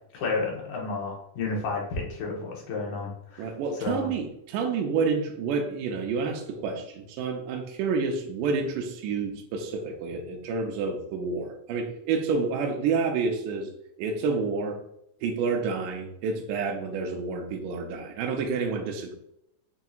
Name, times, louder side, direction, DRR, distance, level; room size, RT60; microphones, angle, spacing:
voice 1, 0.1-4.1, left 3 dB, 75° left, -2 dB, 2.5 m, -31 dB
voice 2, 3.4-13.7 14.0-14.8 15.2-19.1, right 5 dB, 80° right, 2 dB, 2.1 m, -29 dB
6.1 x 2.7 x 2.3 m, 0.78 s
omnidirectional pair, 3.8 m